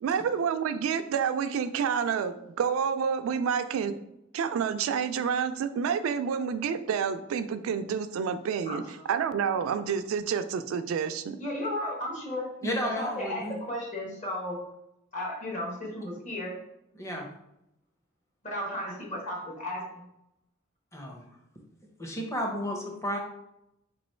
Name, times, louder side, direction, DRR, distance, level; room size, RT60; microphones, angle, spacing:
voice 1, 0.0-4.0 4.3-8.8 9.1-11.4, right 7 dB, 75° right, 10 dB, 0.3 m, -29 dB
voice 2, 11.4-12.5 12.8-14.7 15.1-16.6 18.4-20.0, left 1 dB, 35° left, -2 dB, 1.1 m, -34 dB
voice 3, 12.6-13.6 17.0-17.3 20.9-21.2 22.0-23.2, equal, 15° left, 1 dB, 0.7 m, -32 dB
3.1 x 2.9 x 4.3 m, 0.84 s
head